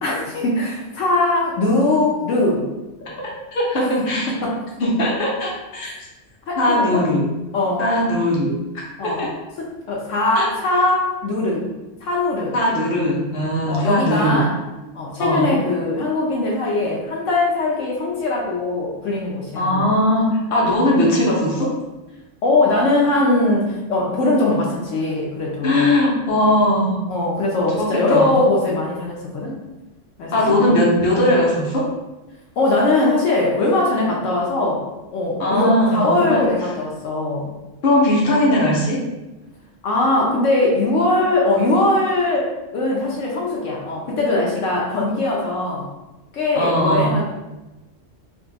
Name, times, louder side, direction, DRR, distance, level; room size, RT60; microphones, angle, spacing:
voice 1, 0.0-2.7 3.8-4.6 6.5-7.1 7.5-7.9 9.0-9.3 9.6-11.7 12.0-12.5 13.7-14.5 14.9-19.9 22.4-25.9 27.1-29.6 30.2-30.8 32.6-34.8 35.1-37.5 39.8-45.9 46.3-47.2, left 2 dB, 75° left, -3 dB, 1.0 m, -21 dB
voice 2, 3.5-4.3 4.8-5.9 6.6-7.3 7.8-9.3 10.3-10.5 12.5-14.5 15.2-15.5 19.6-21.7 25.6-27.0 27.8-28.3 30.3-31.8 35.4-36.5 37.8-39.0 46.5-47.1, left 1 dB, 50° left, -4 dB, 0.9 m, -19 dB
2.6 x 2.4 x 3.9 m, 1.0 s
omnidirectional pair, 1.3 m